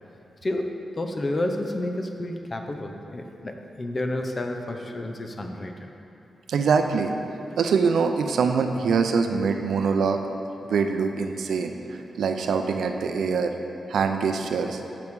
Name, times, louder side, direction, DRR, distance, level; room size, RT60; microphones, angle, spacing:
voice 1, 0.4-5.7, left 1 dB, 30° left, 4 dB, 0.5 m, -30 dB
voice 2, 6.5-7.1 7.6-10.2 10.7-11.8 12.2-13.5 13.9-14.8, right 5 dB, 80° right, 6 dB, 0.4 m, -23 dB
6.9 x 5.2 x 4.7 m, 2.8 s
wide cardioid pair, 115°, 0 cm